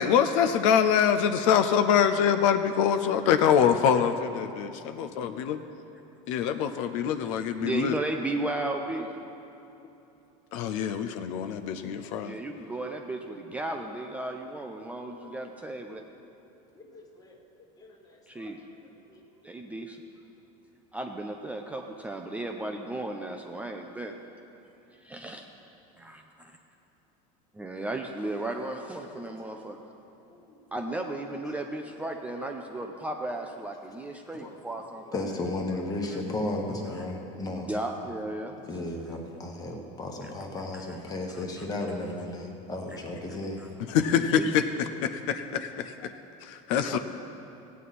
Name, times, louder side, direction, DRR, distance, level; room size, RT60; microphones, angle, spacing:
voice 1, 0.0-5.6 6.3-8.0 10.5-12.3 43.9-46.1 46.4-47.0, left 8 dB, 70° left, 8 dB, 0.6 m, -25 dB
voice 2, 7.6-9.1 12.2-16.0 18.3-18.6 19.4-20.0 20.9-24.1 25.0-25.5 26.0-26.5 27.5-29.8 30.7-35.2 37.7-38.6 41.3-41.6 44.1-44.5 46.9-47.0, right 2 dB, 10° right, 2 dB, 0.4 m, -35 dB
voice 3, 16.8-17.4 17.8-19.2 27.8-27.9 29.1-29.6 30.3-30.6 32.7-32.8 34.4-34.6 35.0-37.7 38.6-43.6 46.0-46.1, left 2 dB, 20° left, 1 dB, 1.3 m, -35 dB
16.0 x 9.3 x 4.2 m, 3.0 s
supercardioid pair, 145°, 18 cm